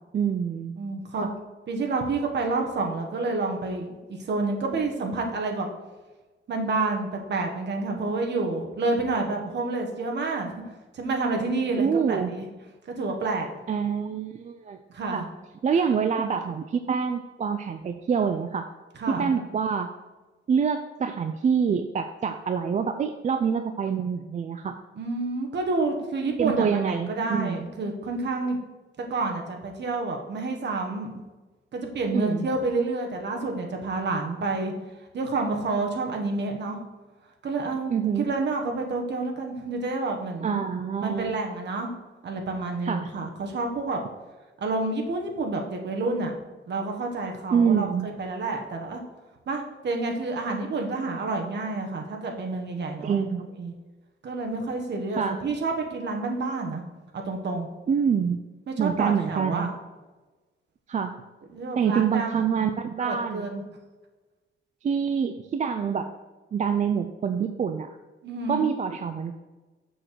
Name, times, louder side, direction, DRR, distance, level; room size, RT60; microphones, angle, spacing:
voice 1, 0.1-0.8 1.2-1.3 11.8-12.4 13.7-14.8 15.1-15.3 15.6-18.7 19.2-19.9 20.5-24.8 26.4-27.7 32.1-32.5 37.9-38.3 40.4-41.3 42.8-43.1 47.5-48.1 53.0-53.5 55.1-55.4 57.9-58.4 58.8-59.7 60.9-61.2 61.8-63.5 64.8-66.1 66.5-68.0 68.5-69.3, right 6 dB, 35° right, 7 dB, 0.3 m, -26 dB
voice 2, 0.8-1.3 1.7-5.7 6.5-10.5 10.9-12.5 13.0-13.5 14.9-15.3 19.0-19.3 25.0-28.6 29.0-31.2 31.7-34.7 35.1-36.8 37.4-37.9 38.2-40.6 41.0-41.9 42.2-44.0 44.6-46.3 46.7-49.0 49.5-53.2 53.6-53.7 54.2-56.8 57.1-57.7 58.7-59.7 61.5-62.3 62.5-62.7 63.0-63.6 68.2-68.7, right 3 dB, 55° right, 2 dB, 1.3 m, -29 dB
6.6 x 6.2 x 4.6 m, 1.2 s
wide cardioid pair, 165°, 21 cm